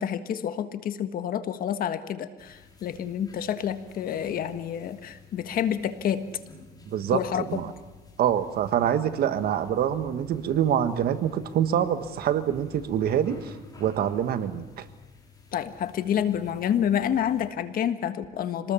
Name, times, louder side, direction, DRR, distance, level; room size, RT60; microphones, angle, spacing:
voice 1, 0.0-6.3 7.1-7.6 15.5-18.7, left 9 dB, 60° left, 10 dB, 1.5 m, -28 dB
sound 1, 2.4-17.5, left 4 dB, 20° left, 5.8 m, -51 dB
voice 2, 6.8-7.7 8.2-14.8, right 9 dB, 65° right, 10 dB, 1.4 m, -26 dB
26.0 x 19.5 x 7.1 m, 1.3 s
cardioid pair, 110°, 17 cm